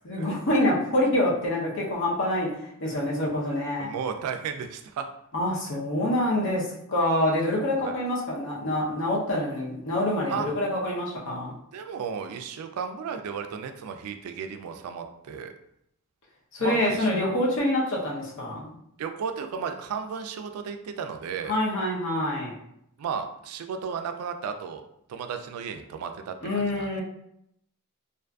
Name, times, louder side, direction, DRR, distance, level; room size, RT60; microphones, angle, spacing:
voice 1, 0.0-2.5 2.8-3.9 5.3-6.6 6.9-11.5 16.5-18.8 21.5-22.5 26.4-27.0, left 1 dB, 60° left, -4 dB, 0.7 m, -26 dB
voice 2, 3.8-5.1 7.8-8.0 10.3-10.5 11.7-15.5 16.6-17.1 19.0-21.5 23.0-24.8 25.1-27.0, right 6 dB, 80° right, 10 dB, 0.3 m, -34 dB
2.5 x 2.4 x 2.3 m, 0.75 s
head